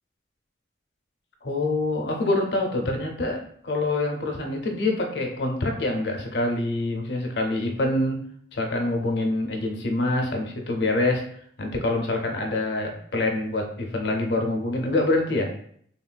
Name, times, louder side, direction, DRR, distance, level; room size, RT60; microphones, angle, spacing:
voice 1, 1.4-8.2 8.5-11.2 11.6-15.5, left 2 dB, 70° left, 2 dB, 0.6 m, -25 dB
3.4 x 2.4 x 2.2 m, 0.62 s
head